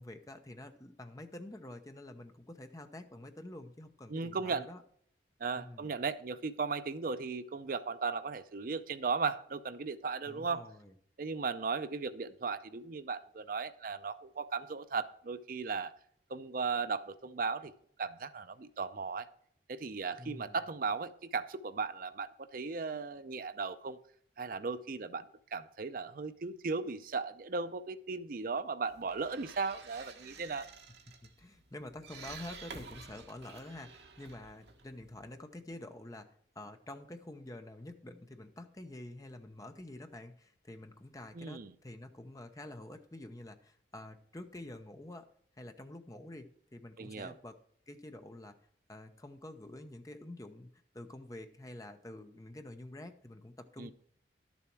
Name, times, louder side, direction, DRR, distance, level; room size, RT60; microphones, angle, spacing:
voice 1, 0.0-4.8 5.6-5.9 10.2-10.9 20.2-20.6 31.2-45.3 45.6-47.6 47.9-48.6 48.9-50.7 50.9-53.9, left 1 dB, 20° left, 7 dB, 0.8 m, -48 dB
voice 2, 4.1-4.7 5.4-10.7 11.2-15.9 16.3-17.7 18.0-19.3 19.7-24.0 24.4-25.2 25.5-30.7 41.3-41.7 47.0-47.3 53.8-53.9, right 4 dB, 50° right, 13 dB, 0.5 m, -36 dB
sound 1, 28.9-35.4, right 5 dB, 65° right, 1.4 m, -51 dB
12.0 x 7.0 x 4.6 m, 0.64 s
head